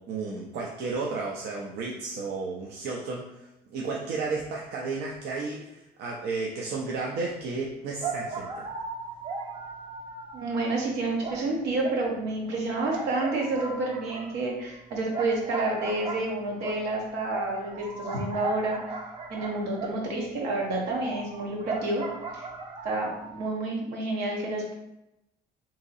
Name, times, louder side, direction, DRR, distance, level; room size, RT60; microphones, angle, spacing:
voice 1, 0.0-8.7, right 3 dB, 75° right, -2 dB, 0.5 m, -33 dB
sound 1, 7.4-7.5 8.0-10.8 11.2-12.5 12.9-20.3 20.9-23.5, right 3 dB, 30° right, 0.5 m, -37 dB
voice 2, 10.3-18.8 19.3-22.0 22.3-22.4 22.8-24.8, right 2 dB, 90° right, -1 dB, 1.0 m, -29 dB
2.9 x 2.7 x 3.9 m, 0.88 s
cardioid pair, 110°, 17 cm